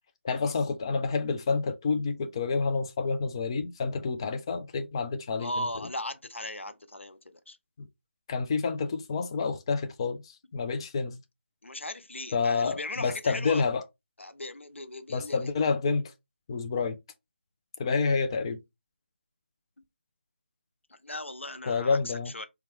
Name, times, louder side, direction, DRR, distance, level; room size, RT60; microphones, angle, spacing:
voice 1, 0.2-5.6 7.8-7.9 8.3-11.2 12.3-13.8 15.1-16.1 16.5-17.0 17.8-18.6 21.7-22.3, left 4 dB, 25° left, 0.3 m, -28 dB
voice 2, 5.4-7.6 11.6-13.6 14.2-15.5 20.9-22.5, left 1 dB, 85° left, 0.6 m, -38 dB
4.2 x 2.3 x 3.3 m
figure-of-eight pair, 160°, 6 cm